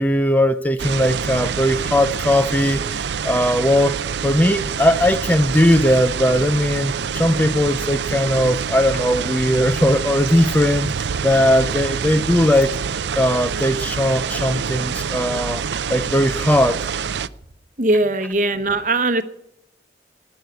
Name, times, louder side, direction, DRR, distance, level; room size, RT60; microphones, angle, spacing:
voice 1, 0.0-4.0 4.2-10.9 11.2-12.7 13.2-15.6 15.9-16.8, left 1 dB, 10° left, 11 dB, 0.4 m, -18 dB
sound 1, 0.8-17.3, right 6 dB, 80° right, 0.5 m, -26 dB
voice 2, 17.8-19.2, right 2 dB, 45° right, 11 dB, 1.0 m, -19 dB
19.0 x 6.4 x 9.3 m, 0.79 s
head